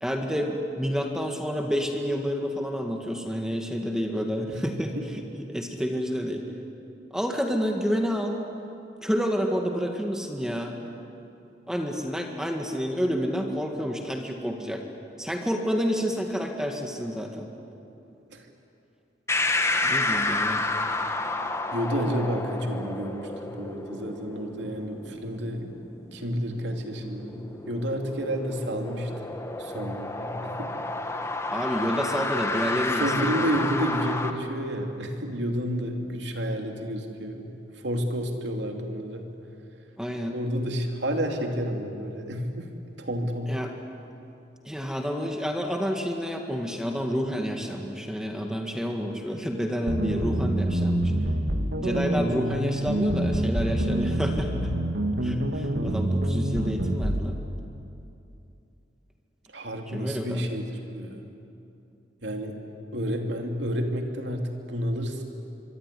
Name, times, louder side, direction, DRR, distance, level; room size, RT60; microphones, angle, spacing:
voice 1, 0.0-4.9 5.3-6.4 7.1-8.4 9.0-10.8 11.7-14.8 15.2-17.5 19.8-20.6 31.5-33.5 40.0-40.4 43.5-43.7 44.7-51.1 51.7-54.7 55.2-57.4 59.9-60.4, equal, 5° right, 2 dB, 1.9 m, -29 dB
voice 2, 4.5-5.3 18.3-18.5 21.7-25.7 26.1-29.3 29.6-30.8 33.0-37.5 37.8-39.3 40.3-42.7 43.0-43.5 59.5-61.2 62.2-62.6 62.9-65.2, equal, 70° right, 3 dB, 3.1 m, -30 dB
sound 1, 19.3-34.3, left 2 dB, 15° left, 1.4 m, -30 dB
sound 2, 49.9-57.3, right 1 dB, 85° right, 2.0 m, -26 dB
24.5 x 24.5 x 10.0 m, 2.8 s
head